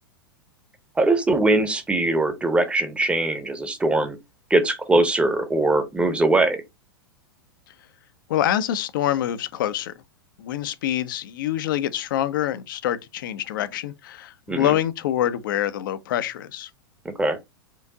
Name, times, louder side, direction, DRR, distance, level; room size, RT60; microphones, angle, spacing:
voice 1, 1.0-4.2 4.5-6.6 14.5-14.7 17.0-17.4, right 2 dB, 10° right, 0.8 m, -21 dB
voice 2, 8.3-9.9 10.4-16.7, left 11 dB, 60° left, 0.5 m, -26 dB
4.6 x 2.6 x 3.6 m
figure-of-eight pair, 100°, 12 cm